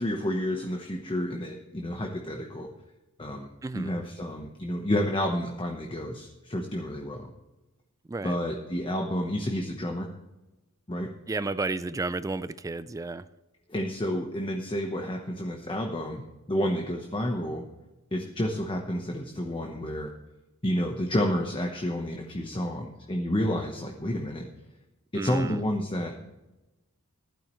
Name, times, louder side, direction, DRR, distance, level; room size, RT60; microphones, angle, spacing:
voice 1, 0.0-2.7 3.2-3.5 3.7-7.3 8.2-10.1 10.9-11.1 13.7-16.2 16.5-17.6 18.1-20.1 20.6-24.5 25.1-26.3, equal, 25° left, 2 dB, 1.1 m, -30 dB
voice 2, 11.3-13.2 25.1-25.6, right 3 dB, 15° right, 15 dB, 0.3 m, -32 dB
15.0 x 12.0 x 3.2 m, 1.0 s
head